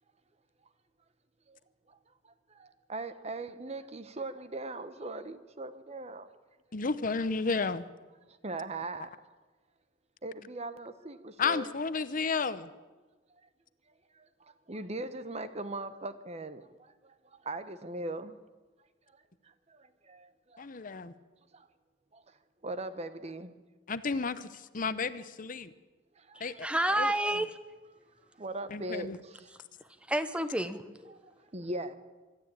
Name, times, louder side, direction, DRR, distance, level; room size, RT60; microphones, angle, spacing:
voice 1, 2.2-6.3 8.3-9.1 10.2-11.7 14.1-18.4 19.4-20.7 21.5-21.7 22.1-22.4 22.6-23.5 26.2-26.5 28.3-29.5 31.1-32.0, right 2 dB, 35° right, 12 dB, 1.0 m, -40 dB
voice 2, 6.7-7.8 11.4-12.7 20.6-21.1 23.9-25.7 26.4-26.7 27.0-27.1 28.7-29.2, left 4 dB, 45° left, 14 dB, 0.8 m, -32 dB
voice 3, 26.3-27.5 30.1-31.2, right 1 dB, 5° right, 11 dB, 1.0 m, -30 dB
24.5 x 12.5 x 8.8 m, 1.3 s
head